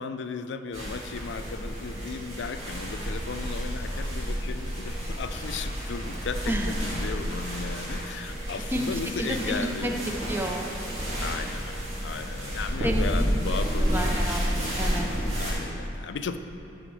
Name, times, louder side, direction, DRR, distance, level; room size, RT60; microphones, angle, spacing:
voice 1, 0.0-10.0 11.2-14.1 14.5-14.6 15.4-16.4, left 5 dB, 75° left, 10 dB, 0.4 m, -35 dB
sound 1, 0.7-15.5, equal, 35° right, 2.0 m, -30 dB
voice 2, 8.7-9.9 10.3-10.7 12.8-13.3 13.8-14.5 14.8-15.3, equal, 10° right, 2 dB, 0.5 m, -30 dB
9.9 x 4.2 x 6.2 m, 2.8 s
head